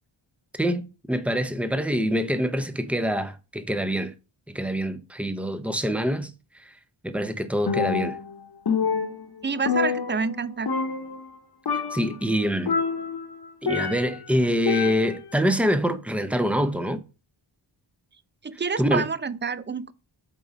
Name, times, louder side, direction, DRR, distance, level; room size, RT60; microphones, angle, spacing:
voice 1, 0.5-4.1 4.5-6.3 6.6-6.7 7.0-8.2 11.9-12.8 13.6-17.0 18.8-19.1, equal, 5° right, 0.9 m, -25 dB
Percussion, 7.7-8.3 8.7-10.4 10.7-11.4 11.7-12.2 12.7-14.2 14.7-15.3, left 5 dB, 50° left, 1.3 m, -27 dB
voice 2, 9.4-10.7 18.4-19.9, right 5 dB, 25° right, 0.5 m, -28 dB
7.3 x 3.9 x 5.2 m
cardioid pair, 40°, 49 cm